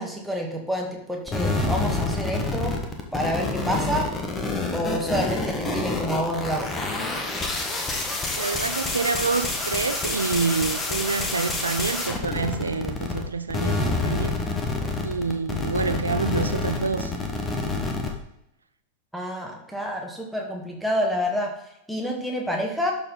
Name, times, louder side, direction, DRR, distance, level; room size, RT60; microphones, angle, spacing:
voice 1, 0.0-2.8 3.1-4.1 4.7-6.8 19.1-21.5 21.9-22.9, equal, ahead, 2.0 m, -28 dB
sound 1, 1.3-13.2 13.5-18.1, left 3 dB, 20° left, 1.5 m, -27 dB
voice 2, 8.4-14.4 15.0-17.1, right 4 dB, 75° right, 0.4 m, -27 dB
12.5 x 4.5 x 4.2 m
figure-of-eight pair, 90°, 0 cm